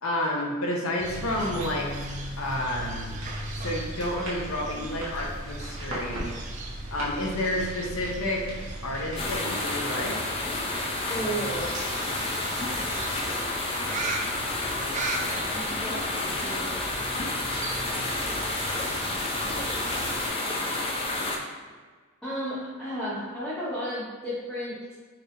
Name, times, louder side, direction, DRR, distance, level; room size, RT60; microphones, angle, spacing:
voice 1, 0.0-2.0 2.4-3.1 3.5-6.4 6.9-8.5 8.8-10.2, left 1 dB, 80° left, -1 dB, 0.7 m, -30 dB
sound 1, 1.0-20.3, right 2 dB, 35° right, 0.4 m, -38 dB
sound 2, 1.0-9.4, right 1 dB, 70° right, 1.1 m, -39 dB
sound 3, 9.2-21.4, left 2 dB, 25° left, 0.4 m, -30 dB
voice 2, 11.1-11.7 15.5-16.0 16.4-16.8 22.2-24.9, equal, 5° left, -11 dB, 0.8 m, -33 dB
4.3 x 3.2 x 2.6 m, 1.4 s
head